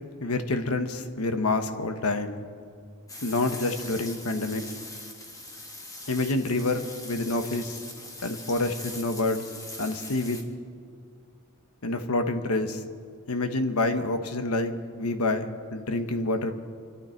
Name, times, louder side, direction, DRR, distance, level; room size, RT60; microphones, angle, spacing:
voice 1, 0.2-2.4 3.2-4.6 6.1-7.8 8.2-9.5 9.8-10.4 11.8-12.8 13.3-16.5, left 2 dB, 90° left, 8 dB, 1.1 m, -27 dB
sound 1, 3.1-10.4, left 2 dB, 15° left, 1.5 m, -42 dB
26.5 x 12.0 x 4.5 m, 2.1 s
head